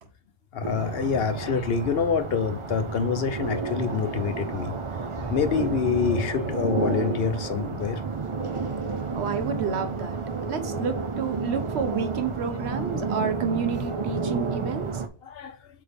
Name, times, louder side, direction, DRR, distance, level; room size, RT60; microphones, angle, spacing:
voice 1, 0.5-4.8 5.3-8.0 15.2-15.6, left 6 dB, 70° left, 0.9 m, -26 dB
sound 1, 0.6-15.1, right 4 dB, 35° right, 0.6 m, -31 dB
sound 2, 5.2-7.3, right 1 dB, 20° left, 1.9 m, -41 dB
voice 2, 9.1-10.2 10.5-15.0, right 5 dB, 80° right, 1.2 m, -30 dB
8.0 x 3.5 x 3.5 m
omnidirectional pair, 1.1 m